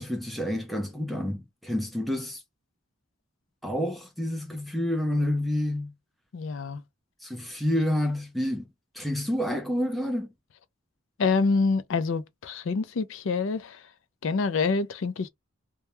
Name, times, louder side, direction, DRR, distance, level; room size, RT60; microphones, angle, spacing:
voice 1, 0.0-2.4 3.6-5.9 7.2-8.6 8.9-10.3, left 1 dB, ahead, 0.4 m, -28 dB
voice 2, 6.3-6.8 11.2-13.8 14.2-15.3, left 4 dB, 70° left, 0.4 m, -26 dB
2.2 x 2.1 x 2.9 m
head